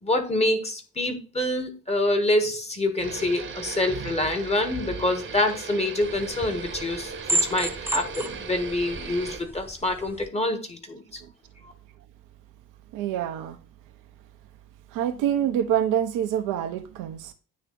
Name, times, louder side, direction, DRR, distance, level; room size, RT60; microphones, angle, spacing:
voice 1, 0.0-11.2, left 1 dB, 15° left, 1.3 m, -26 dB
sound 1, 3.0-9.4, right 5 dB, 35° right, 1.1 m, -37 dB
sound 2, 6.0-10.3, right 2 dB, 5° right, 0.3 m, -32 dB
voice 2, 12.9-13.6 14.9-17.3, right 10 dB, 55° right, 0.8 m, -26 dB
9.5 x 3.2 x 3.9 m
figure-of-eight pair, 55°, 38 cm